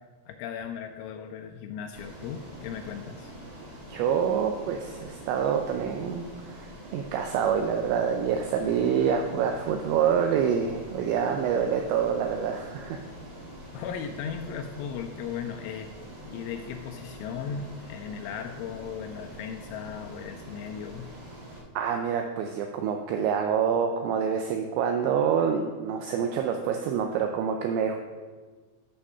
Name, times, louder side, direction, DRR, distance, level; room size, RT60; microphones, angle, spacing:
voice 1, 0.3-3.3 13.7-15.9 16.3-21.1, left 7 dB, 85° left, 4 dB, 2.8 m, -37 dB
Ocean, 1.9-21.6, equal, 55° right, 1.8 m, -45 dB
voice 2, 3.9-13.0 21.8-28.0, right 7 dB, 85° right, 4 dB, 2.5 m, -27 dB
8.7 x 6.1 x 5.5 m, 1.4 s
omnidirectional pair, 5.7 m